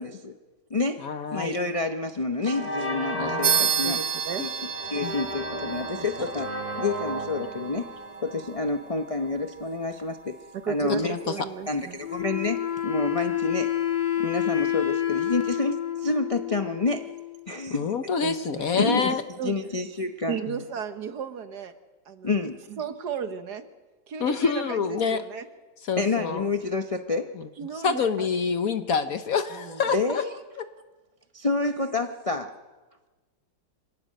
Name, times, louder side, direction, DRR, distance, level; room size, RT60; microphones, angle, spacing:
voice 1, 0.0-0.3 0.7-1.0 1.3-4.0 4.4-4.5 4.9-6.5 6.8-7.9 8.2-10.4 10.7-11.1 11.7-13.7 14.2-17.1 17.5-17.9 18.8-19.1 19.4-20.3 22.2-22.6 26.0-27.3 29.9-30.4 31.3-32.5, left 3 dB, 35° left, 4 dB, 0.5 m, -28 dB
voice 2, 1.0-1.6 3.1-3.7 5.0-5.1 11.0-11.2 17.7-19.2 24.2-25.2 25.8-26.4 27.4-27.5 27.8-30.2 30.6-30.7, left 5 dB, 55° left, 9 dB, 1.2 m, -27 dB
sound 1, 1.7-2.0 2.4-9.2, right 1 dB, 20° right, 2.3 m, -35 dB
sound 2, 3.4-13.4, right 7 dB, 45° right, 1.2 m, -33 dB
voice 3, 3.8-4.5 10.5-12.0 18.2-19.5 20.3-21.7 22.1-22.3 22.7-23.6 24.1-25.5 27.6-28.3 29.5-29.8, right 7 dB, 65° right, 9 dB, 1.6 m, -35 dB
Wind instrument woodwind instrument, 12.0-17.5, left 11 dB, 85° left, 2.6 m, -28 dB
25.5 x 17.5 x 6.6 m, 1.3 s
omnidirectional pair, 2.0 m